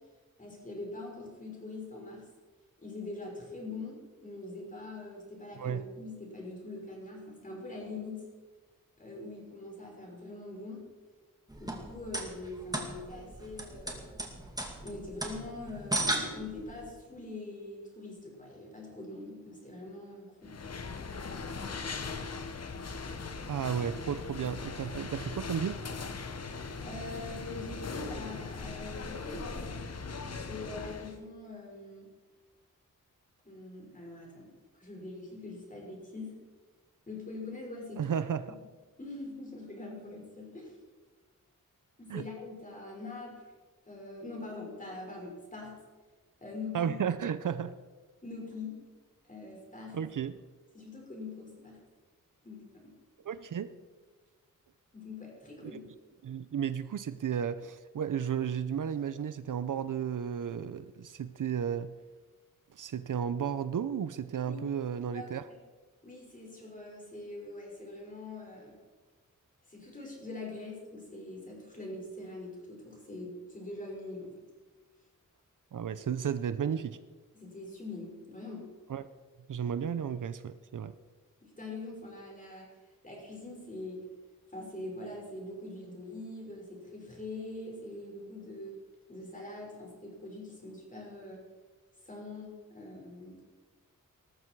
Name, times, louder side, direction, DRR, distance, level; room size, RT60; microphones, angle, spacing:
voice 1, 0.4-2.3 2.8-8.3 9.0-10.9 11.6-14.0 14.8-20.6 26.8-29.8 30.4-32.1 33.4-36.4 37.1-38.1 39.0-40.8 42.0-43.4 43.9-45.8 46.4-47.0 48.2-48.9 49.3-50.0 50.7-51.8 52.4-52.9 54.9-55.8 64.5-64.6 65.1-65.5 66.0-68.8 69.7-74.3 77.3-78.7 81.4-82.8 83.0-84.0 84.5-88.8 89.1-91.4 92.0-93.4, left 2 dB, 25° left, -1 dB, 5.9 m, -43 dB
sound 1, 11.5-16.9, right 1 dB, 10° right, 2.4 m, -36 dB
sound 2, 20.4-31.2, left 4 dB, 50° left, 1.2 m, -39 dB
voice 2, 23.5-25.8 38.0-38.5 42.1-42.2 46.7-47.7 49.9-50.3 53.3-53.7 55.6-55.7 56.2-61.9 62.8-65.4 75.7-77.0 78.9-79.1 79.5-80.9, right 8 dB, 70° right, 13 dB, 0.7 m, -33 dB
19.0 x 13.5 x 4.7 m, 1.3 s
wide cardioid pair, 130°, 33 cm